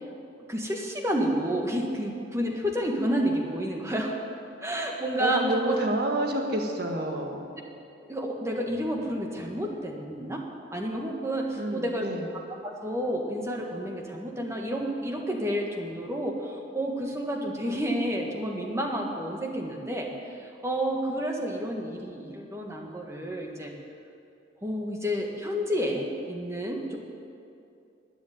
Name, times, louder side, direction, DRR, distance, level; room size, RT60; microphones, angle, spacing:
voice 1, 0.5-4.2 4.6-5.8 8.0-10.4 10.7-12.0 12.3-23.7 24.6-27.0, equal, 15° right, 1 dB, 1.6 m, -30 dB
voice 2, 5.2-7.5 11.6-12.2, right 1 dB, 55° right, 2 dB, 1.7 m, -28 dB
11.5 x 10.0 x 9.5 m, 2.6 s
head